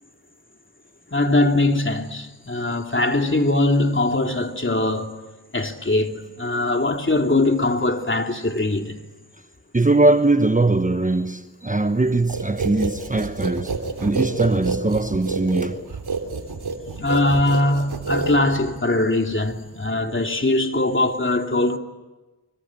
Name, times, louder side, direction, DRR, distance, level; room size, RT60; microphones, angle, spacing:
voice 1, 1.1-5.1 5.5-9.0 17.0-21.8, left 2 dB, 30° left, 3.0 m, -21 dB
voice 2, 9.7-15.9, right 2 dB, 20° right, 1.1 m, -21 dB
sound 1, 12.3-18.8, right 4 dB, 80° right, 3.3 m, -28 dB
26.0 x 24.5 x 8.9 m
cardioid pair, 40°, 38 cm